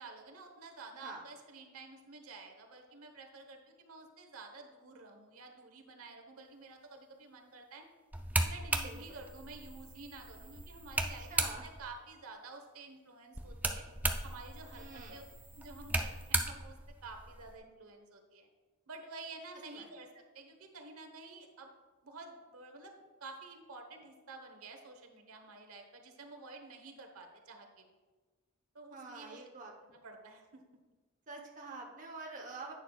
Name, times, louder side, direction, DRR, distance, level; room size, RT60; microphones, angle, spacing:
voice 1, 0.0-7.9 8.4-13.8 14.2-15.2 15.6-18.5 18.9-21.7 22.0-27.9 28.7-29.4 29.9-30.6, right 3 dB, 85° right, 4 dB, 1.1 m, -50 dB
sound 1, 8.1-11.9 13.3-17.5, right 2 dB, 10° right, 0.4 m, -37 dB
voice 2, 11.3-11.6 14.7-15.2 19.7-19.9 28.9-29.7 31.3-32.7, right 3 dB, 35° right, 1 dB, 0.9 m, -46 dB
10.5 x 8.8 x 2.4 m, 1.3 s
head